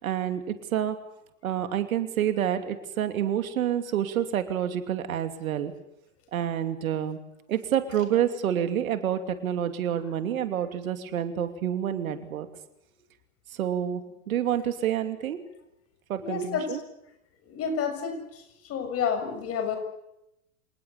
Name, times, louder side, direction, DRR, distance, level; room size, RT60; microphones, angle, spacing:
voice 1, 0.0-1.0 1.4-5.7 6.3-7.2 7.5-12.5 13.6-14.0 14.3-15.4 16.1-16.8, right 10 dB, 70° right, 9 dB, 2.9 m, -28 dB
voice 2, 16.2-16.8 17.5-18.2 18.7-19.8, left 6 dB, 35° left, 7 dB, 7.0 m, -29 dB
27.5 x 19.0 x 7.1 m, 0.84 s
hypercardioid pair, 110°, 43 cm